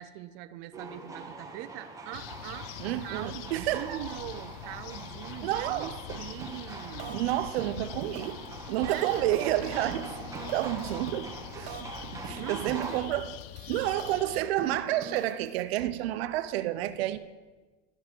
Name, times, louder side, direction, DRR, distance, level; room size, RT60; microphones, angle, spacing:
voice 1, 0.0-2.8 3.0-7.2 8.8-9.5 11.8-11.9 12.4-13.1, right 14 dB, 40° right, 0.4 m, -42 dB
sound 1, 0.7-13.0, right 3 dB, 10° right, 1.1 m, -44 dB
sound 2, 2.1-14.4, left 14 dB, 70° left, 0.5 m, -44 dB
voice 2, 2.8-4.0 5.4-6.2 7.1-8.4 8.7-10.1 10.5-13.4 13.7-17.2, right 14 dB, 80° right, 0.7 m, -30 dB
sound 3, 6.4-6.7 7.0-7.3 7.6-8.5 8.7-12.0 12.2-13.1 13.4-15.6, right 5 dB, 55° right, 1.7 m, -43 dB
12.0 x 5.6 x 6.1 m
supercardioid pair, 155°, 30 cm